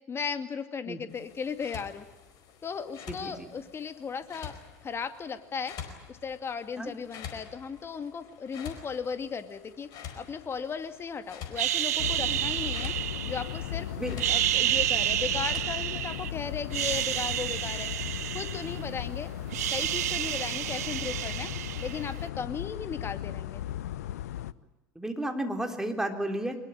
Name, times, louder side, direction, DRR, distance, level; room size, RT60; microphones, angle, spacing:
voice 1, 0.1-2.1 2.6-4.5 4.8-5.8 6.1-9.9 10.2-12.9 13.3-13.9 14.3-17.9 18.3-19.3 19.7-21.5 21.8-23.6, left 6 dB, 30° left, 10 dB, 2.3 m, -36 dB
sound 1, 1.1-16.0, left 8 dB, 50° left, 4.7 m, -47 dB
voice 2, 3.1-3.5 6.8-6.9 12.3-12.4 14.0-14.2 25.0-26.6, right 1 dB, 5° right, 5 dB, 3.7 m, -32 dB
sound 2, 11.6-13.7 14.1-16.3 16.6-19.1 19.3-22.2, right 13 dB, 70° right, 0.9 m, -30 dB
sound 3, 12.0-24.5, left 12 dB, 70° left, 0.8 m, -37 dB
23.5 x 21.5 x 9.0 m, 1.0 s
figure-of-eight pair, 75°, 9 cm